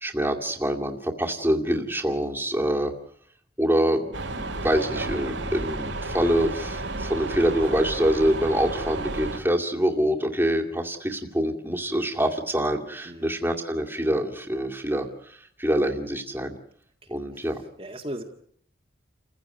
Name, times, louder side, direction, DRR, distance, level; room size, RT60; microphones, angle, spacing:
voice 1, 0.0-2.9 3.6-16.5 17.1-17.6, equal, 10° right, 2 dB, 2.4 m, -25 dB
sound 1, 4.1-9.4, right 2 dB, 75° right, 2.3 m, -32 dB
voice 2, 17.0-18.2, right 1 dB, 30° right, 2 dB, 1.9 m, -38 dB
30.0 x 15.5 x 9.2 m, 0.65 s
head